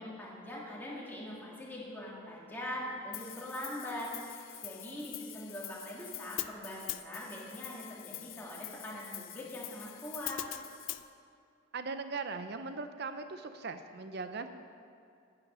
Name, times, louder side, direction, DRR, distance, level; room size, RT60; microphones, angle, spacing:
voice 1, 0.0-10.5, left 1 dB, 10° left, -5 dB, 1.9 m, -42 dB
Hi-hat, 3.1-11.0, left 16 dB, 65° left, 0.4 m, -44 dB
voice 2, 11.7-14.5, right 4 dB, 50° right, 9 dB, 0.6 m, -39 dB
10.5 x 8.7 x 5.5 m, 2.4 s
head